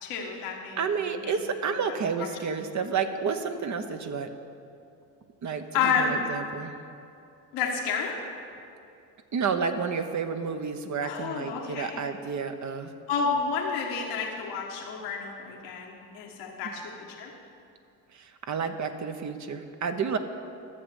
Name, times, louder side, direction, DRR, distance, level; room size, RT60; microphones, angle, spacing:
voice 1, 0.0-0.8 1.1-1.3 5.7-6.2 7.5-8.1 11.0-12.0 13.1-16.9 17.2-17.3, left 5 dB, 85° left, 0 dB, 1.6 m, -30 dB
voice 2, 0.8-4.3 5.4-6.7 9.3-12.9 18.1-20.2, right 5 dB, 45° right, 7 dB, 1.0 m, -30 dB
12.5 x 7.2 x 7.1 m, 2.6 s
supercardioid pair, 80°, 40 cm